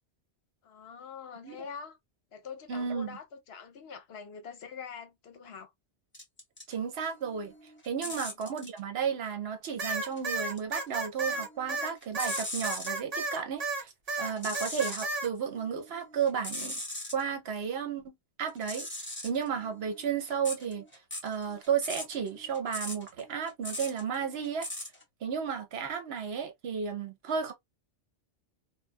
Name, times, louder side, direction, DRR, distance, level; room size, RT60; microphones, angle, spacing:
voice 1, 0.6-2.0 2.3-5.7 7.9-8.1 14.5-14.6, left 6 dB, 65° left, 0.8 m, -45 dB
voice 2, 2.7-3.2 6.7-7.5 7.8-13.9 14.2-16.8 17.1-18.9 19.2-20.8 21.2-24.7 25.2-27.5, right 7 dB, 65° right, 0.9 m, -33 dB
sound 1, 6.1-6.7 7.1-8.8 10.0-11.0 11.3-13.0 14.2-15.1 15.6-17.2 18.5-25.0, left 1 dB, 10° left, 0.7 m, -40 dB
sound 2, 9.8-13.8 14.1-15.3, right 2 dB, 45° right, 0.6 m, -33 dB
2.3 x 2.2 x 2.4 m
omnidirectional pair, 1.2 m